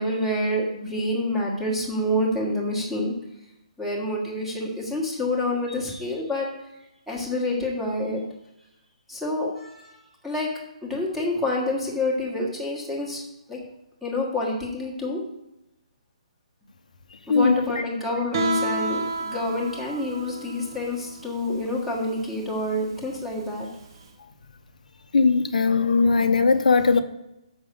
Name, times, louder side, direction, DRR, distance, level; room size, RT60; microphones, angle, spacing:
voice 1, 0.0-3.1 3.8-6.5 7.1-8.2 9.1-10.0 10.2-10.5 10.8-13.2 13.5-13.6 14.0-15.2 17.3-23.7 23.9-24.0, left 1 dB, ahead, -4 dB, 1.4 m, -27 dB
Guitar, 18.3-24.0, right 2 dB, 35° right, 0.9 m, -31 dB
voice 2, 25.1-27.0, left 4 dB, 80° left, 8 dB, 0.9 m, -19 dB
6.3 x 5.9 x 6.9 m, 0.88 s
hypercardioid pair, 170°, 4 cm